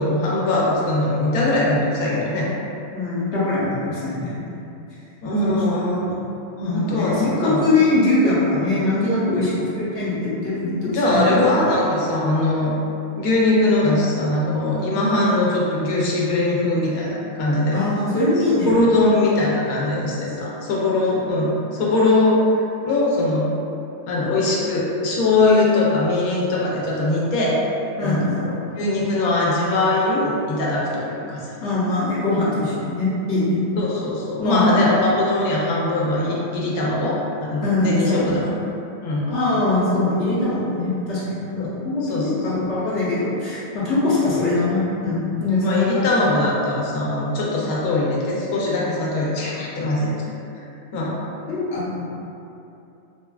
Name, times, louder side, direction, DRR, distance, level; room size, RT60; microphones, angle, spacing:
voice 1, 0.0-2.5 5.2-6.2 6.6-7.6 10.8-12.7 13.2-17.8 18.7-22.4 22.8-23.5 24.1-27.6 28.0-28.2 28.4-31.5 33.8-38.5 39.0-39.3 41.6-41.7 42.0-42.4 45.6-50.2 50.9-51.2, left 2 dB, 85° left, -5 dB, 1.1 m, -21 dB
voice 2, 2.9-4.6 5.4-5.6 6.6-11.5 17.7-18.7 21.0-21.1 28.0-28.5 31.6-33.7 34.4-34.7 37.6-38.4 39.3-46.0 51.5-52.1, left 2 dB, 60° left, -9 dB, 0.9 m, -22 dB
3.3 x 2.2 x 2.2 m, 2.8 s
omnidirectional pair, 1.5 m